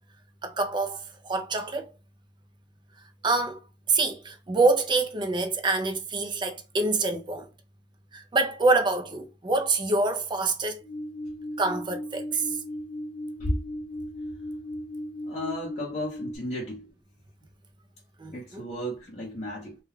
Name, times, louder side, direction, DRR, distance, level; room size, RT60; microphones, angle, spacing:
voice 1, 0.4-1.9 3.2-3.6 3.9-7.5 8.1-10.8 11.6-12.6 18.2-18.6, right 3 dB, 25° right, 0.4 m, -26 dB
sound 1, 10.8-16.4, left 1 dB, 40° right, 1.2 m, -36 dB
voice 2, 15.3-16.9 18.3-19.8, left 1 dB, 35° left, 0.7 m, -34 dB
2.3 x 2.2 x 3.2 m
head